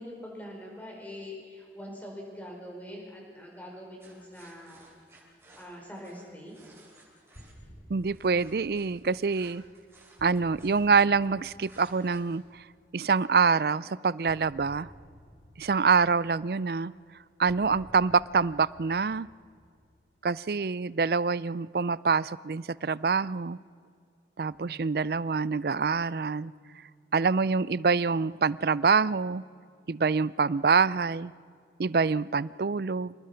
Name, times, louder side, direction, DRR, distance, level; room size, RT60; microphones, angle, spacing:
voice 1, 0.0-4.8 5.6-6.6, left 1 dB, 10° left, -1 dB, 5.1 m, -43 dB
sound 1, 4.0-7.6 8.0-11.3 11.6-12.4, right 2 dB, 15° right, 6.0 m, -57 dB
sound 2, 7.3-13.1 14.3-20.5, equal, 65° left, 5.2 m, -55 dB
voice 2, 7.9-9.6 10.2-12.6 12.9-14.9 15.6-16.9 17.4-19.3 20.2-23.6 24.4-26.5 27.1-29.4 29.9-31.3 31.8-33.1, right 5 dB, 55° right, 20 dB, 0.4 m, -26 dB
Bass guitar, 24.5-30.8, right 2 dB, 35° right, 2.1 m, -59 dB
27.5 x 20.0 x 5.8 m, 2.2 s
head